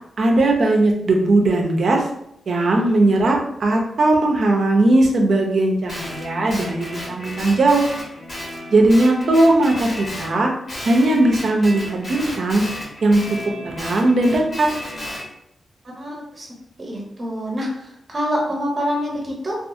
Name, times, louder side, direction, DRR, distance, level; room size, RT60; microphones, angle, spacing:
voice 1, 0.2-2.1 2.5-7.8 8.7-10.5 10.8-12.6 13.0-13.2 13.6-14.7, right 2 dB, 65° right, 1 dB, 0.5 m, -18 dB
Guitar, 5.9-10.3 10.7-15.3, left 1 dB, 45° left, 1.2 m, -33 dB
voice 2, 15.8-16.5 16.8-19.5, equal, 40° right, -2 dB, 0.9 m, -26 dB
2.6 x 2.4 x 2.5 m, 0.76 s
cardioid pair, 85°, 0 cm